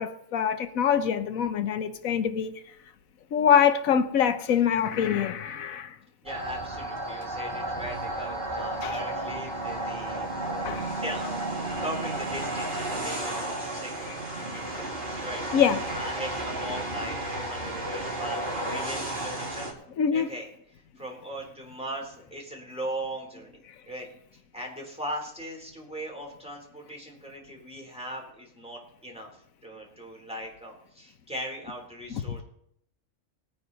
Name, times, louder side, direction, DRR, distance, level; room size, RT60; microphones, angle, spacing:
voice 1, 0.0-2.5 3.3-6.0 8.8-9.0 10.6-10.9 15.5-15.8 20.0-20.3 32.1-32.4, left 8 dB, 90° left, 1.3 m, -24 dB
voice 2, 6.2-10.3 10.5-15.4 15.9-19.7 20.1-20.5 21.0-23.6 23.9-29.3 29.6-32.4, right 1 dB, 5° right, 3.4 m, -39 dB
sound 1, 6.3-19.7, right 1 dB, 40° right, 2.8 m, -33 dB
20.0 x 9.4 x 4.0 m
omnidirectional pair, 1.4 m